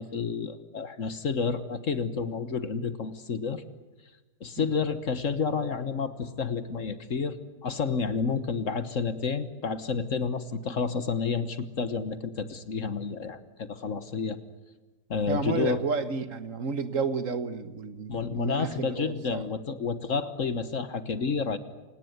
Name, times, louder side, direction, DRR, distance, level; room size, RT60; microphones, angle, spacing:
voice 1, 0.0-3.6 4.4-7.4 7.6-14.4 15.1-15.8 18.1-21.6, left 5 dB, 55° left, 12 dB, 1.6 m, -30 dB
voice 2, 15.3-19.5, right 5 dB, 55° right, 11 dB, 1.6 m, -31 dB
28.0 x 18.5 x 9.3 m, 1.2 s
omnidirectional pair, 1.7 m